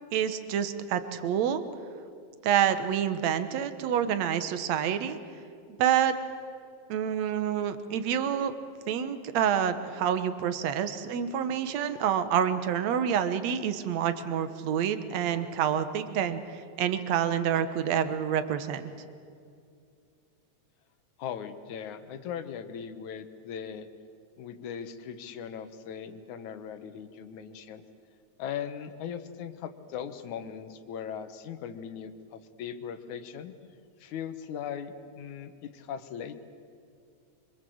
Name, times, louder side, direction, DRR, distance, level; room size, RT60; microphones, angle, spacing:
voice 1, 0.1-1.6 2.4-5.2 5.8-6.2 6.9-8.5 8.9-18.9, right 9 dB, 70° right, 11 dB, 2.4 m, -28 dB
voice 2, 21.2-23.9 24.4-27.8 28.4-33.6 34.0-36.4, left 8 dB, 80° left, 10 dB, 2.7 m, -39 dB
25.5 x 25.0 x 7.9 m, 2.3 s
omnidirectional pair, 3.3 m